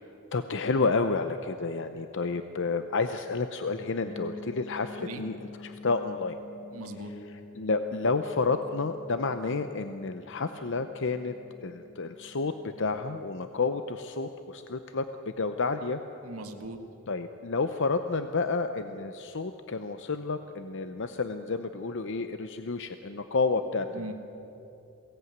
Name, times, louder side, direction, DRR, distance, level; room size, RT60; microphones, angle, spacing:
voice 1, 0.3-5.4 5.6-6.4 7.6-11.3 11.6-15.0 15.4-16.0 17.1-23.9, left 4 dB, 55° left, 9 dB, 0.7 m, -30 dB
sound 1, 4.0-13.7, left 3 dB, 10° left, 4.4 m, -48 dB
voice 2, 6.7-7.2 16.2-16.8 23.9-24.1, right 2 dB, 75° right, 5 dB, 1.8 m, -40 dB
22.0 x 17.5 x 9.4 m, 3.0 s
head